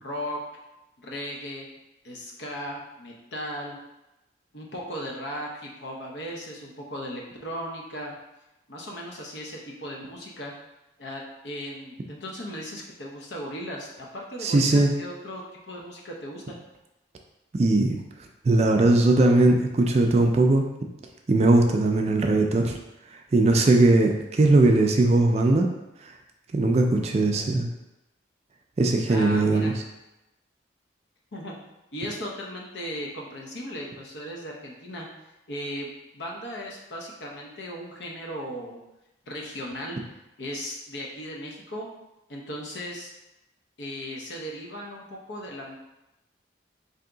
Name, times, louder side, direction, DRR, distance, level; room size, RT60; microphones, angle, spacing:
voice 1, 0.0-0.4 1.0-1.7 2.0-3.8 4.5-8.2 8.7-10.5 11.0-16.6 29.1-29.7 31.3-31.6 31.9-35.1 35.5-38.8 39.3-40.0 40.4-41.9 42.3-43.1 43.8-45.8, equal, 70° left, -1 dB, 0.8 m, -37 dB
voice 2, 14.4-14.9 17.5-17.9 18.5-20.6 21.3-22.8 23.3-25.7 26.5-27.7 28.8-29.7, right 2 dB, 35° right, 3 dB, 0.3 m, -19 dB
3.4 x 2.7 x 3.8 m, 0.97 s
head